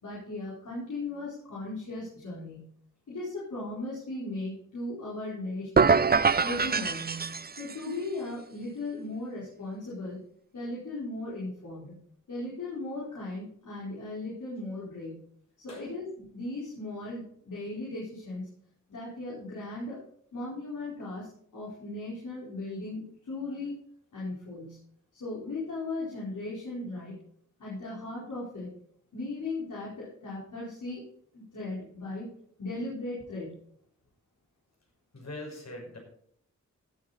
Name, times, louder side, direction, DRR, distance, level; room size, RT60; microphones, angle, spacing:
voice 1, 0.0-2.6 3.1-6.0 6.4-10.2 10.5-12.0 12.3-15.2 15.6-18.5 18.9-20.0 20.3-23.8 24.1-24.8 25.1-27.2 27.6-28.7 29.1-31.0 31.3-32.3 32.6-33.6, left 2 dB, 85° left, -8 dB, 4.6 m, -37 dB
sound 1, 5.8-7.9, right 5 dB, 30° right, 0.5 m, -24 dB
voice 2, 35.1-36.0, left 1 dB, 60° left, 1 dB, 5.2 m, -42 dB
16.5 x 7.6 x 4.1 m, 0.65 s
cardioid pair, 55°, 30 cm